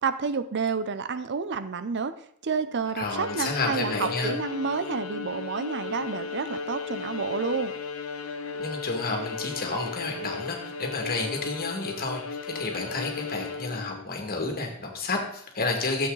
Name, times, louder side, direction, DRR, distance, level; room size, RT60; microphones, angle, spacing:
voice 1, 0.0-2.1 2.4-7.7, right 5 dB, 55° right, 11 dB, 0.6 m, -29 dB
Bowed string instrument, 3.0-14.1, left 5 dB, 70° left, 1.1 m, -35 dB
voice 2, 3.0-4.3 8.6-16.1, left 3 dB, 45° left, 2 dB, 2.3 m, -30 dB
12.5 x 7.9 x 4.0 m, 0.69 s
head